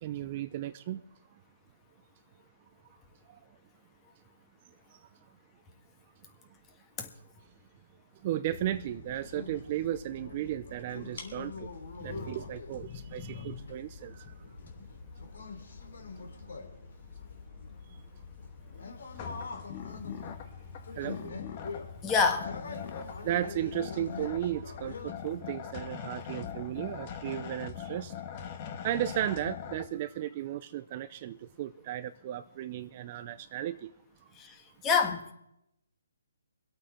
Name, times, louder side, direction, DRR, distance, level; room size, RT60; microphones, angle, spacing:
voice 1, 0.0-1.0 8.2-11.7 12.0-14.1 21.0-21.2 23.2-28.1 28.8-33.9, right 12 dB, 35° right, 12 dB, 0.5 m, -35 dB
sound 1, 8.5-25.1, left 4 dB, 65° left, 3.0 m, -44 dB
voice 2, 12.0-12.3 13.4-13.5 22.0-22.6 34.4-35.3, left 5 dB, 15° left, 5 dB, 1.5 m, -28 dB
sound 2, 19.1-29.9, left 8 dB, 35° left, 1.5 m, -42 dB
24.5 x 8.5 x 4.4 m, 0.80 s
hypercardioid pair, 150°, 0 cm